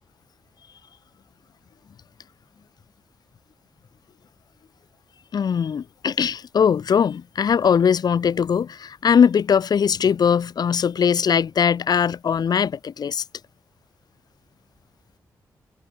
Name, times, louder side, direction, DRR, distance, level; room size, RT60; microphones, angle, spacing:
voice 1, 5.3-13.2, left 7 dB, 70° left, 5.7 m, -20 dB
cardioid pair, 50°, 7 cm